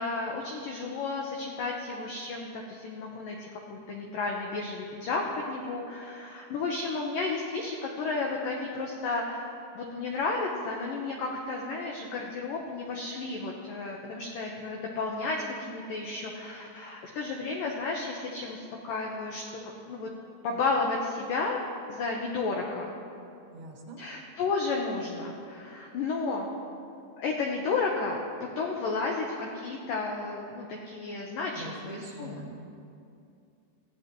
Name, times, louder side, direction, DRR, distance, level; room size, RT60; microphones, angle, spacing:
voice 1, 0.0-19.4 19.9-20.1 20.4-21.6 21.9-22.9 24.0-26.5 27.2-28.2 28.6-32.4, left 3 dB, 80° left, 0 dB, 2.0 m, -32 dB
voice 2, 23.5-24.0 31.6-32.6, right 2 dB, 65° right, -1 dB, 3.5 m, -43 dB
23.0 x 15.5 x 3.1 m, 2.6 s
omnidirectional pair, 5.5 m